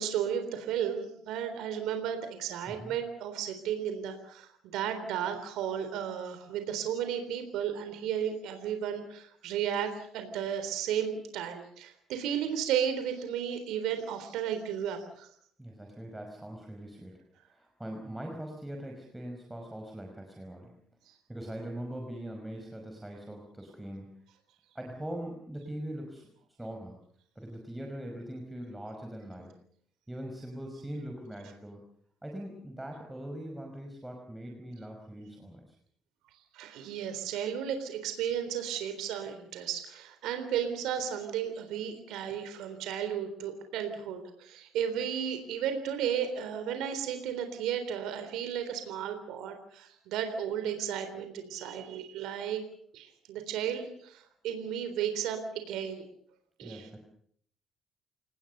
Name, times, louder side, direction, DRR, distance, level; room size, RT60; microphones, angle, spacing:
voice 1, 0.0-15.3 36.5-52.6 52.9-56.0 56.6-56.9, right 9 dB, 90° right, 8 dB, 3.7 m, -34 dB
voice 2, 15.6-20.8 21.3-24.1 24.8-26.3 26.6-27.0 27.4-29.5 30.1-31.8 32.2-35.8 56.6-57.0, right 1 dB, 10° right, 2 dB, 5.2 m, -41 dB
30.0 x 19.0 x 6.7 m, 0.63 s
cardioid pair, 105°, 0 cm